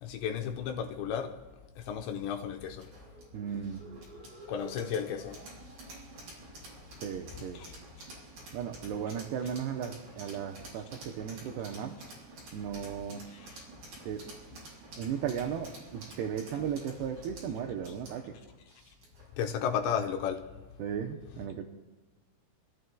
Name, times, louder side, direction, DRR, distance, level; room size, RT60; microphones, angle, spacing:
voice 1, 0.0-1.4 1.9-2.9 4.5-5.4 7.6-7.7 13.3-13.6 19.4-20.5, left 7 dB, 85° left, 2.9 m, -33 dB
sound 1, 2.8-19.3, right 2 dB, 50° right, 7.6 m, -50 dB
voice 2, 3.3-3.8 7.0-7.6 8.5-12.0 12.5-13.2 14.0-14.3 15.0-18.3 20.8-21.6, right 8 dB, 75° right, 2.7 m, -36 dB
29.5 x 14.5 x 2.3 m
omnidirectional pair, 5.1 m